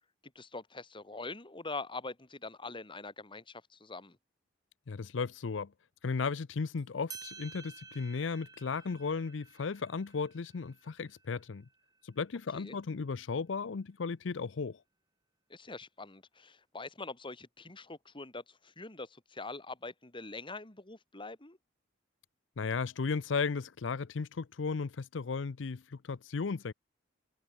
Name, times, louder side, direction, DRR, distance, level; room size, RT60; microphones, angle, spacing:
voice 1, 0.3-4.2 12.5-12.8 15.5-21.6, left 3 dB, 25° left, 2.3 m, -44 dB
voice 2, 4.9-5.7 6.0-11.6 12.0-14.8 22.6-26.7, left 5 dB, 70° left, 0.6 m, -35 dB
sound 1, 6.8-6.9 7.1-12.2, right 5 dB, 20° right, 3.8 m, -52 dB
open air
head